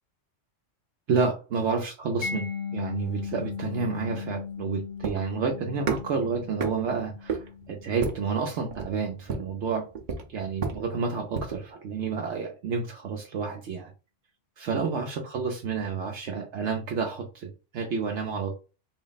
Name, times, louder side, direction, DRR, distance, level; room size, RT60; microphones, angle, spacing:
voice 1, 1.1-9.9 10.3-13.9 14.6-18.6, right 5 dB, 70° right, 1 dB, 0.9 m, -30 dB
Mallet percussion, 2.2-9.0, left 6 dB, 50° left, 0.6 m, -38 dB
sound 1, 3.0-11.7, right 5 dB, 45° right, 0.7 m, -35 dB
4.0 x 2.1 x 3.9 m, 0.32 s
omnidirectional pair, 1.3 m